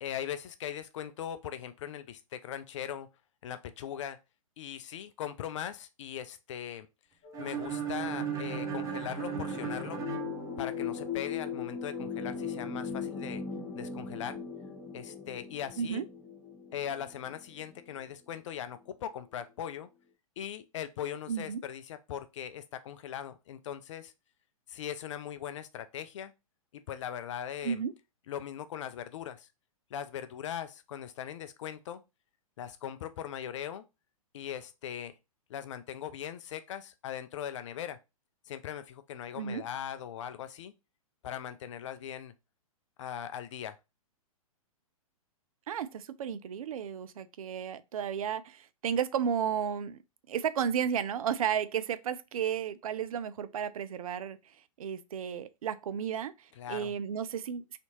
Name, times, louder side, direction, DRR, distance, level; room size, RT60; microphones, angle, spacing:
voice 1, 0.0-3.1 3.4-4.2 4.6-6.9 7.4-10.0 10.6-13.4 13.7-14.4 14.9-16.1 16.7-19.9 20.4-24.1 24.7-26.3 26.9-27.8 28.3-29.5 29.9-32.0 32.6-33.8 34.3-35.1 35.5-38.0 38.5-40.7 41.2-42.3 43.0-43.8 56.6-56.9, left 9 dB, 55° left, 0.4 m, -40 dB
sound 1, 7.2-18.0 18.9-19.0, left 6 dB, 40° left, 1.1 m, -39 dB
sound 2, 7.3-11.2, right 9 dB, 20° right, 0.5 m, -37 dB
voice 2, 21.3-21.6 27.6-27.9 39.3-39.6 45.7-50.0 50.3-57.8, right 8 dB, 70° right, 0.4 m, -33 dB
3.3 x 2.8 x 2.8 m
hypercardioid pair, 115°, 19 cm